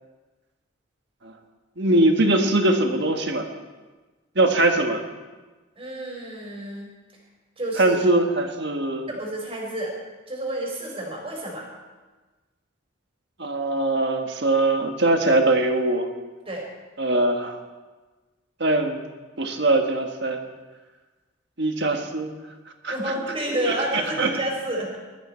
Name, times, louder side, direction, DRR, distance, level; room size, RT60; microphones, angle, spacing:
voice 1, 1.8-3.5 4.3-5.0 7.8-9.1 13.4-16.1 17.0-17.6 18.6-19.0 19.4-20.4 21.6-22.3 22.8-22.9 23.6-24.3, right 2 dB, 55° right, 5 dB, 1.6 m, -21 dB
voice 2, 5.8-6.9 7.6-8.0 9.1-10.0 10.3-11.7 16.5-16.7 22.9-25.0, right 1 dB, 25° right, -1 dB, 4.4 m, -30 dB
21.0 x 13.5 x 4.4 m, 1.3 s
head